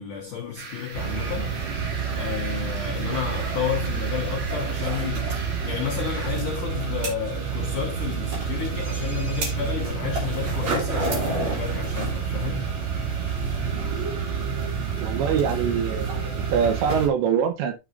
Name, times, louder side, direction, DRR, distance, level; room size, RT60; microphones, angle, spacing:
voice 1, 0.0-15.1, left 8 dB, 85° left, 1.7 m, -32 dB
sound 1, 0.6-6.3, right 4 dB, 60° right, 6.0 m, -39 dB
sound 2, 0.9-17.1, right 5 dB, 40° right, 3.1 m, -28 dB
voice 2, 15.0-17.7, right 7 dB, 75° right, 2.8 m, -24 dB
12.5 x 6.1 x 2.6 m
omnidirectional pair, 6.0 m